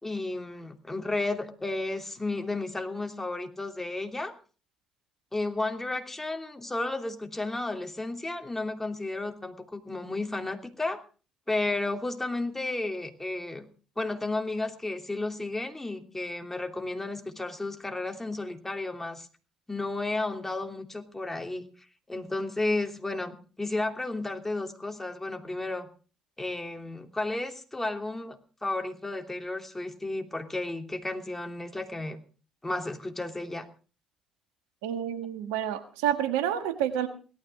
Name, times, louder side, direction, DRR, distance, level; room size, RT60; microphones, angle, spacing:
voice 1, 0.0-4.3 5.3-11.0 11.5-13.7 14.0-19.3 19.7-21.7 22.1-25.9 26.4-32.2 32.6-33.7, left 2 dB, 15° left, 5 dB, 3.0 m, -33 dB
voice 2, 34.8-37.1, right 10 dB, 80° right, 9 dB, 1.5 m, -29 dB
17.5 x 12.5 x 4.9 m, 0.38 s
hypercardioid pair, 45°, 2 cm